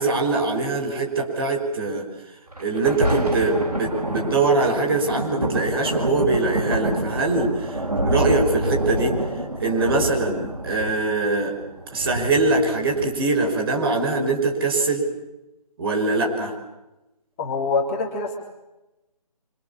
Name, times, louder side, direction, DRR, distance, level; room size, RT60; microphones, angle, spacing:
voice 1, 0.0-2.1 2.6-9.2 9.6-11.6 11.9-15.0 15.8-16.5, right 3 dB, 40° right, 1 dB, 5.8 m, -22 dB
Thunder, 2.5-13.5 14.2-14.3, right 1 dB, 80° right, 6.7 m, -27 dB
voice 2, 17.4-18.4, left 4 dB, 25° left, 1 dB, 3.6 m, -24 dB
28.0 x 26.0 x 7.2 m, 0.98 s
figure-of-eight pair, 150°, 20 cm